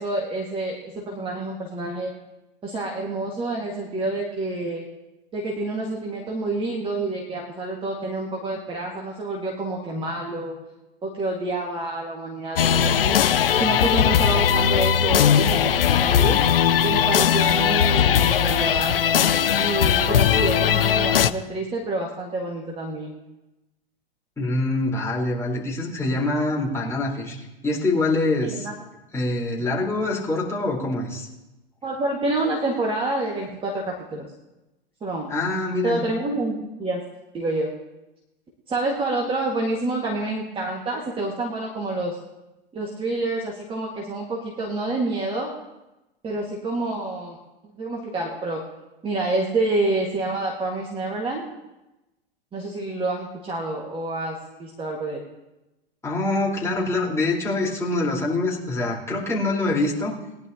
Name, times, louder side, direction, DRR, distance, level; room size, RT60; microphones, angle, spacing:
voice 1, 0.0-2.1 2.6-4.9 5.3-10.6 11.0-13.2 13.6-16.4 16.8-19.0 19.6-23.1 28.4-28.7 31.8-34.3 35.0-35.3 35.8-37.1 37.3-37.7 38.7-42.2 42.7-45.5 46.2-47.4 47.8-48.6 49.0-51.4 52.5-55.2, right 2 dB, 15° right, -2 dB, 1.9 m, -28 dB
sound 1, 12.6-21.3, left 9 dB, 65° left, 0.7 m, -19 dB
voice 2, 24.4-27.4 27.6-28.7 29.1-31.3 35.3-36.1 56.0-60.1, left 2 dB, 10° left, -6 dB, 4.2 m, -25 dB
21.0 x 11.0 x 2.9 m, 1.0 s
figure-of-eight pair, 105°, 31 cm